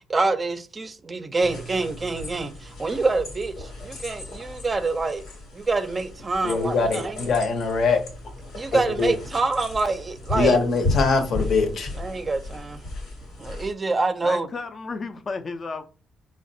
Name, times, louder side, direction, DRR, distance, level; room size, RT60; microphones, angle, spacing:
voice 1, 0.1-5.2 5.5-7.2 8.5-10.6 12.0-12.8 13.4-14.5, right 3 dB, 30° right, 0.4 m, -26 dB
sound 1, 1.4-13.7, left 2 dB, 90° left, 1.1 m, -35 dB
voice 2, 6.4-8.0 8.7-9.1 10.3-11.9, left 4 dB, 65° left, 0.7 m, -22 dB
voice 3, 14.2-15.8, left 4 dB, 40° left, 0.4 m, -33 dB
3.8 x 2.1 x 2.6 m
cardioid pair, 90°, 0 cm